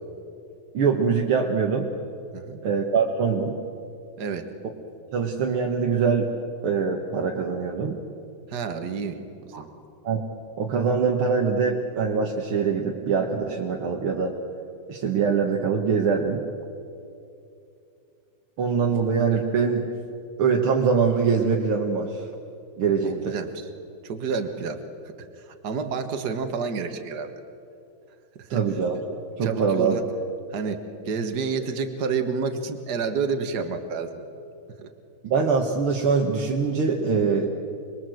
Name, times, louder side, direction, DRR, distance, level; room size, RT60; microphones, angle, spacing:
voice 1, 0.7-1.9 2.6-3.6 5.1-6.3 6.6-8.0 9.5-9.6 10.0-10.2 10.6-14.3 14.9-16.4 18.6-19.9 20.4-22.3 22.8-23.3 28.5-30.0 35.2-37.5, right 5 dB, 85° right, 0 dB, 2.4 m, -23 dB
voice 2, 4.2-4.5 8.5-9.7 23.0-23.5 24.0-27.3 28.4-28.6 29.4-30.1 30.5-34.2 34.8-34.9, right 5 dB, 50° right, 7 dB, 1.9 m, -30 dB
26.0 x 21.5 x 7.8 m, 2.6 s
omnidirectional pair, 2.3 m